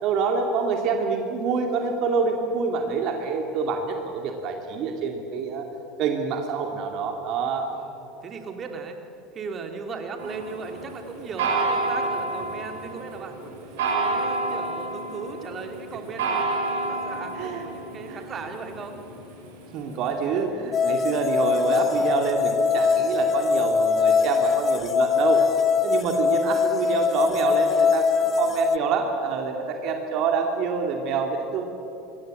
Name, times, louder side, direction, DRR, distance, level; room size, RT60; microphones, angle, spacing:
voice 1, 0.0-5.7 6.0-7.7 17.4-17.6 18.1-18.2 19.7-25.4 25.8-31.6, right 5 dB, 50° right, 3 dB, 2.4 m, -26 dB
voice 2, 7.7-9.0 9.3-19.0, right 4 dB, 35° right, 4 dB, 2.7 m, -37 dB
sound 1, 10.2-20.4, right 3 dB, 65° right, 7.1 m, -30 dB
sound 2, 20.7-28.8, left 5 dB, 30° left, 0.8 m, -22 dB
26.5 x 21.5 x 7.8 m, 2.9 s
figure-of-eight pair, 70°, 0 cm